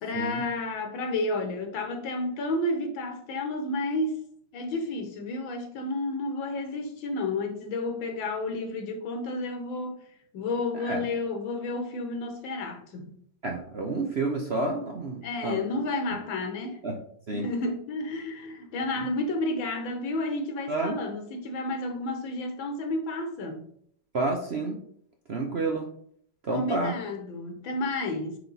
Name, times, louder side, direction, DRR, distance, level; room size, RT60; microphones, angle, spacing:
voice 1, 0.0-4.2 4.5-10.0 10.3-13.2 15.2-16.8 17.3-23.7 26.5-28.4, left 2 dB, 85° left, 1.9 m, -31 dB
voice 2, 13.4-15.6 16.8-16.9 17.3-17.5 20.7-21.0 24.1-24.8 25.3-25.9 26.4-26.9, right 3 dB, 50° right, 0.8 m, -29 dB
9.6 x 3.4 x 4.0 m
omnidirectional pair, 2.1 m